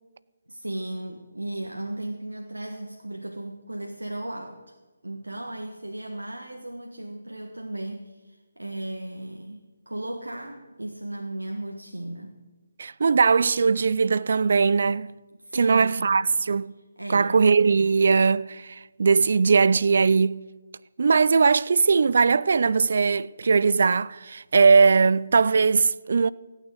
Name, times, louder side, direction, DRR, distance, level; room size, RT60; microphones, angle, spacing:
voice 1, 0.5-4.6 5.0-12.4 15.4-16.3 17.0-17.4, right 1 dB, 85° right, 1.4 m, -36 dB
voice 2, 12.8-15.1 15.5-16.7 17.1-20.4 21.0-26.3, right 5 dB, 55° right, 0.4 m, -20 dB
16.0 x 9.1 x 8.0 m
figure-of-eight pair, 150°, 0 cm